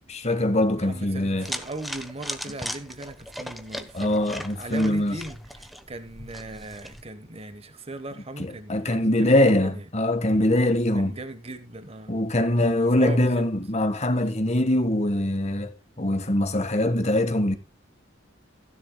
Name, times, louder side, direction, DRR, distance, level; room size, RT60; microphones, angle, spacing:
voice 1, 0.1-1.5 3.9-5.2 8.4-11.1 12.1-15.7 16.0-17.6, left 1 dB, 35° left, 1.5 m, -23 dB
voice 2, 0.8-9.8 10.9-12.2 12.6-13.4, right 2 dB, 30° right, 1.2 m, -39 dB
sound 1, 1.4-7.0, equal, ahead, 1.0 m, -38 dB
16.0 x 11.0 x 2.3 m
head